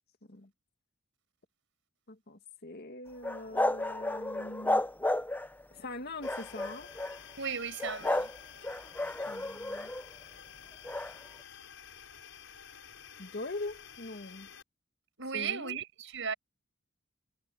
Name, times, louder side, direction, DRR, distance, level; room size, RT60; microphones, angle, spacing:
voice 1, 2.1-4.8 5.7-6.9 9.3-9.9 13.2-14.5 15.3-15.8, left 2 dB, 55° left, 2.0 m, -42 dB
sound 1, 3.2-5.6 6.2-7.2 7.8-8.4 8.6-10.1 10.8-11.1, left 1 dB, 10° left, 0.7 m, -32 dB
sound 2, 6.2-14.6, left 8 dB, 70° left, 6.4 m, -51 dB
voice 2, 7.4-8.3 15.2-16.3, right 6 dB, 65° right, 6.8 m, -36 dB
head